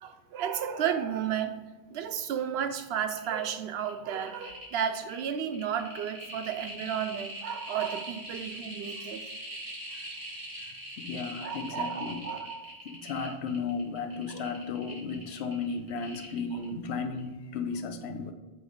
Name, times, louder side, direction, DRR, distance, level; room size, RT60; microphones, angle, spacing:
voice 1, 0.0-1.5 1.9-9.2 11.4-12.7 13.2-13.4 14.3-14.5 16.5-16.6, right 8 dB, 80° right, 8 dB, 0.8 m, -33 dB
sound 1, 3.1-3.4 3.8-16.8 17.1-17.2, right 1 dB, 60° right, 2.0 m, -42 dB
voice 2, 10.6-12.2 12.8-18.3, left 5 dB, 90° left, 8 dB, 0.9 m, -35 dB
7.5 x 2.7 x 4.9 m, 1.2 s
omnidirectional pair, 1.1 m